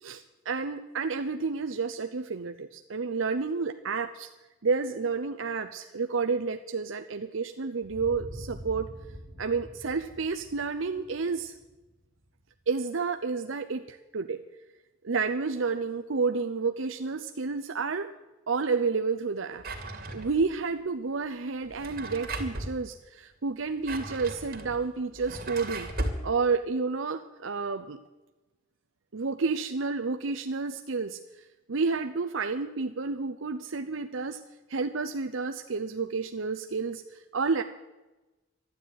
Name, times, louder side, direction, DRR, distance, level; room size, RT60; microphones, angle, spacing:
voice 1, 0.0-4.3 4.6-8.9 9.4-11.5 12.7-14.4 15.0-18.1 18.5-19.6 20.1-25.9 26.2-28.0 29.1-31.2 31.7-34.4 34.7-37.6, right 4 dB, 70° right, 7 dB, 0.7 m, -30 dB
sound 1, 7.8-12.4, equal, 45° left, 5.5 m, -45 dB
Drawer open or close, 19.6-20.6 21.6-22.7 23.6-26.2, right 1 dB, 50° right, 2.5 m, -36 dB
13.0 x 11.0 x 9.3 m, 1.1 s
head